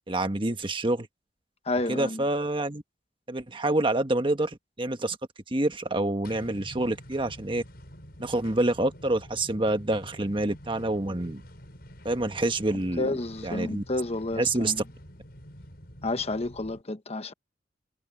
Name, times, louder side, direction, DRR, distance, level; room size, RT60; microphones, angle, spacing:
voice 1, 0.1-1.1 1.9-2.8 3.3-5.2 5.5-7.6 8.2-11.4 12.0-13.2 13.4-13.8 14.3-14.7, right 2 dB, 30° right, 1.4 m, -27 dB
voice 2, 1.7-2.2 13.0-14.8 16.0-17.3, left 2 dB, 35° left, 1.1 m, -30 dB
sound 1, 6.2-16.8, equal, 60° left, 6.8 m, -47 dB
head